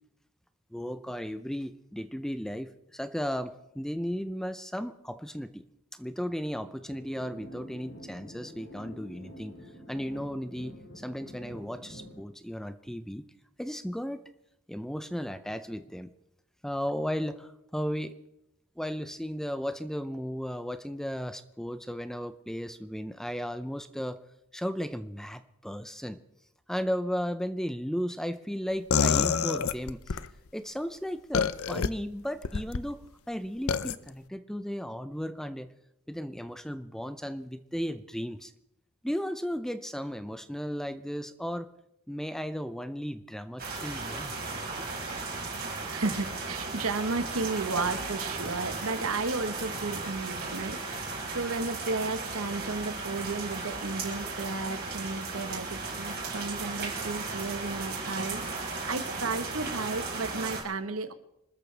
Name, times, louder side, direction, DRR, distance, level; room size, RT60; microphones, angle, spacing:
voice 1, 0.7-5.6 5.9-9.6 9.9-13.2 13.6-14.2 14.7-16.1 16.6-18.1 18.8-24.2 24.5-26.2 26.7-30.2 30.5-35.7 36.1-38.5 39.0-41.7 42.1-44.3, equal, ahead, 11 dB, 0.5 m, -35 dB
sound 1, 6.9-12.2, equal, 60° left, 6.6 m, -47 dB
sound 2, 28.9-30.3 31.3-31.9 32.4-32.8 33.7-34.0, left 6 dB, 80° left, 0.6 m, -26 dB
sound 3, 43.6-60.6, right 3 dB, 45° right, 5.0 m, -36 dB
voice 2, 45.5-61.1, right 3 dB, 75° right, 10 dB, 1.2 m, -34 dB
26.5 x 13.5 x 3.4 m, 0.84 s
head